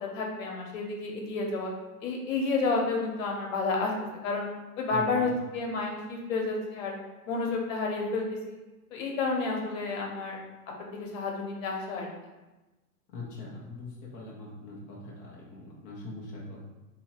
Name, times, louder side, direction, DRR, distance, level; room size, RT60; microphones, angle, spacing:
voice 1, 0.0-1.7 2.0-3.9 4.2-4.5 4.8-7.0 7.3-8.6 8.9-10.4 10.9-12.1, left 3 dB, 55° left, 0 dB, 1.1 m, -30 dB
voice 2, 4.9-5.2 13.1-16.7, left 2 dB, 20° left, -5 dB, 0.5 m, -42 dB
2.8 x 2.7 x 4.4 m, 1.1 s
hypercardioid pair, 135°, 47 cm